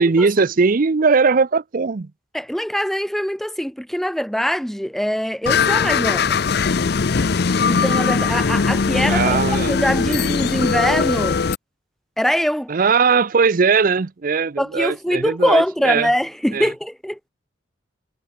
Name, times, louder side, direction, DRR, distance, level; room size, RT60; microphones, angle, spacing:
voice 1, 0.0-2.1 9.1-9.8 10.1-10.2 12.7-16.1 16.5-16.7, right 5 dB, 45° right, 0.5 m, -19 dB
voice 2, 2.3-6.4 7.7-11.4 12.2-12.7 14.6-17.2, equal, ahead, 0.5 m, -22 dB
sound 1, 5.5-11.6, left 5 dB, 60° left, 0.6 m, -20 dB
head